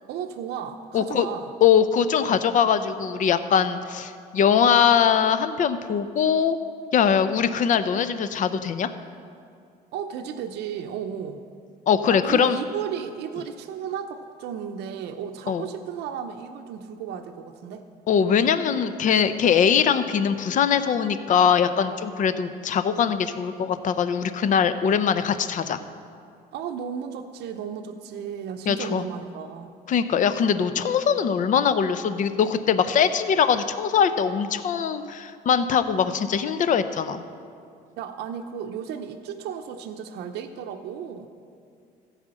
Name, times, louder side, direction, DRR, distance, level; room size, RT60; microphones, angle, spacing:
voice 1, 0.1-1.5 9.9-11.4 12.1-17.9 26.5-29.7 38.0-41.3, right 8 dB, 80° right, 7 dB, 0.7 m, -34 dB
voice 2, 0.9-1.3 1.6-6.6 6.9-8.9 11.9-12.6 15.5-15.6 18.1-25.8 28.7-29.0 29.9-37.2, left 7 dB, 50° left, 11 dB, 0.6 m, -22 dB
15.0 x 5.0 x 7.6 m, 2.3 s
cardioid pair, 110°, 17 cm